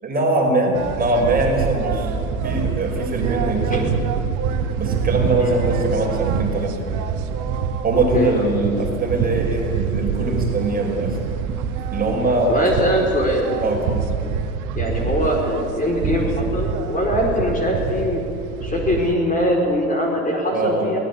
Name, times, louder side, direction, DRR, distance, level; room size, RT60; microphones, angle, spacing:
voice 1, 0.0-2.1 2.4-4.0 4.8-6.8 7.8-11.2 11.9-12.9 13.6-14.1 20.5-20.9, right 2 dB, 20° right, 1 dB, 5.3 m, -22 dB
sound 1, 0.7-19.1, right 6 dB, 40° right, 2.2 m, -25 dB
voice 2, 8.1-8.5 12.5-13.6 14.7-18.2 18.6-21.0, equal, 20° left, 0 dB, 5.0 m, -22 dB
23.0 x 19.0 x 8.6 m, 2.5 s
hypercardioid pair, 95°, 45 cm